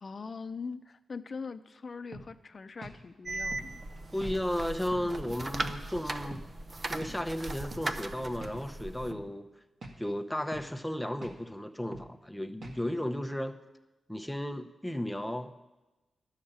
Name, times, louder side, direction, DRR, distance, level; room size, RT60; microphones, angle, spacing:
voice 1, 0.0-3.8, left 5 dB, 45° left, 12 dB, 0.6 m, -42 dB
sound 1, 2.1-2.3 2.8-3.0 3.5-3.7 4.2-4.4 4.9-5.1 5.6-5.8 6.3-6.5 7.0-7.2 7.7-7.9 8.4-8.6 9.1-9.3 9.8-10.0 10.5-10.7 11.2-11.4 11.9-12.1 12.6-12.8, right 2 dB, 55° right, 1.8 m, -44 dB
sound 2, 3.3-9.1, right 2 dB, 35° right, 0.7 m, -38 dB
voice 2, 4.1-6.4 6.9-9.5 10.0-13.6 14.1-15.5, left 1 dB, 5° left, 8 dB, 0.8 m, -34 dB
11.0 x 6.5 x 8.7 m, 1.1 s
cardioid pair, 75°, 0 cm